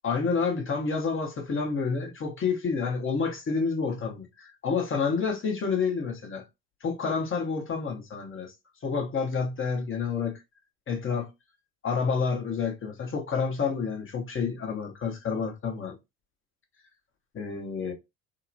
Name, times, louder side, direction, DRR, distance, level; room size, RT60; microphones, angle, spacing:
voice 1, 0.0-6.5 6.8-8.5 8.8-10.3 10.9-11.3 11.8-16.0 17.3-17.9, left 5 dB, 25° left, 0.9 m, -29 dB
2.8 x 2.1 x 2.6 m
hypercardioid pair, 70°, 46 cm